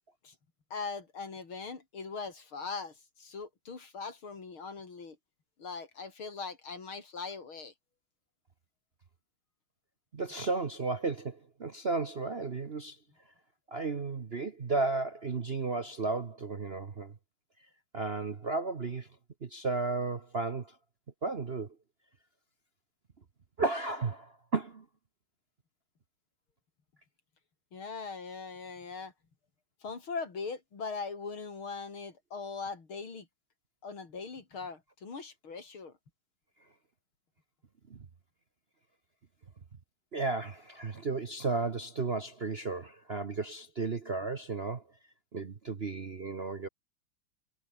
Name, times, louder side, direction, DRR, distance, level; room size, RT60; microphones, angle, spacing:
voice 1, 0.7-5.2 5.6-7.7 27.7-29.1 29.8-33.3 33.8-35.9, left 4 dB, 70° left, 4.5 m, -40 dB
voice 2, 10.1-13.0 13.7-17.1 17.9-19.1 19.4-20.7 21.2-21.7 23.6-24.8 37.9-38.0 40.1-44.8 45.3-46.7, right 3 dB, 35° right, 1.1 m, -33 dB
omnidirectional pair, 2.4 m